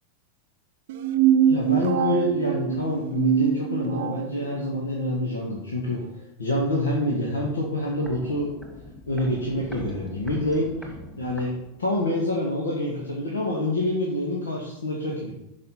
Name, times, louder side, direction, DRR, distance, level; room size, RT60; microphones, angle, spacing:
sound 1, 0.9-4.3, right 9 dB, 55° right, 0.7 m, -23 dB
voice 1, 1.5-6.0 6.4-8.5 9.1-10.7 11.2-15.3, left 1 dB, 70° left, -3 dB, 1.9 m, -26 dB
Walk footsteps, 8.0-12.2 12.5-12.6, left 2 dB, 5° left, 2.0 m, -43 dB
11.5 x 5.0 x 5.8 m, 0.85 s
figure-of-eight pair, 90°, 0 cm